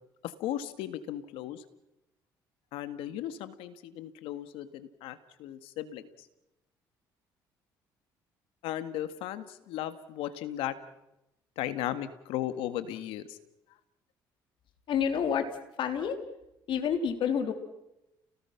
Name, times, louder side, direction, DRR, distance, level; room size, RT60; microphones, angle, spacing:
voice 1, 0.2-1.6 2.7-6.0 8.6-10.8 11.6-13.4, left 12 dB, 80° left, 12 dB, 1.8 m, -36 dB
voice 2, 14.9-15.4 15.8-16.2 16.7-17.5, left 7 dB, 65° left, 7 dB, 3.4 m, -28 dB
30.0 x 19.0 x 5.9 m, 0.90 s
supercardioid pair, 80°, 9 cm